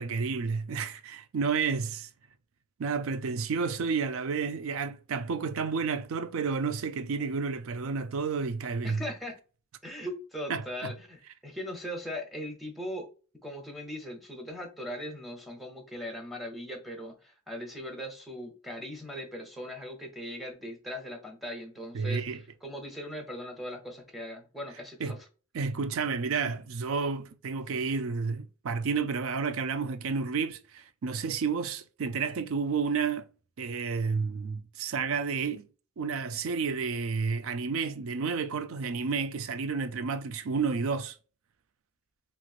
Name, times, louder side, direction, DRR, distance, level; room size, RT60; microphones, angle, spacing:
voice 1, 0.0-2.1 2.8-9.0 10.5-10.9 21.9-22.4 25.0-25.2 25.5-33.3 33.6-35.6 36.0-41.2, right 5 dB, 70° right, 0.4 m, -31 dB
voice 2, 8.8-9.4 9.8-13.1 13.4-25.2, equal, ahead, 0.8 m, -39 dB
3.0 x 2.9 x 2.4 m
head